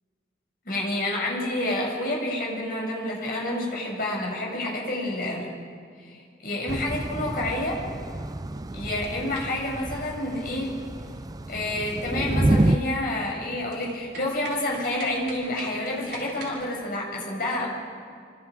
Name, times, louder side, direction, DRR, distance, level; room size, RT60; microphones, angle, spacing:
voice 1, 0.7-5.5 6.0-6.2 6.4-7.8 8.7-10.8 11.5-17.7, left 1 dB, 55° left, -2 dB, 6.8 m, -29 dB
Thunder / Rain, 6.7-12.8, right 1 dB, 20° right, 0.5 m, -28 dB
sound 1, 8.7-16.6, right 2 dB, 75° right, 5.4 m, -45 dB
27.0 x 25.5 x 5.1 m, 2.2 s
head